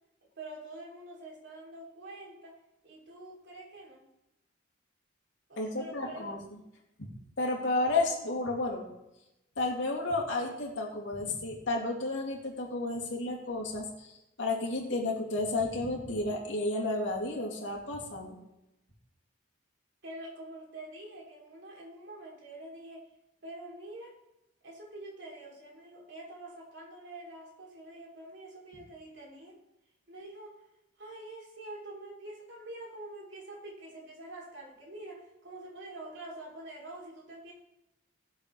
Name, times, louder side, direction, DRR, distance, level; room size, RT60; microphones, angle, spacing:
voice 1, 0.4-2.6 2.8-4.1 5.5-6.4 20.0-23.1 23.4-24.1 24.6-29.6 30.1-30.6 31.0-37.5, right 1 dB, 65° right, -2 dB, 3.3 m, -46 dB
voice 2, 5.6-6.4 7.4-8.8 9.6-14.1 14.4-18.4, left 2 dB, 70° left, -2 dB, 2.8 m, -32 dB
19.0 x 7.6 x 3.4 m, 0.91 s
head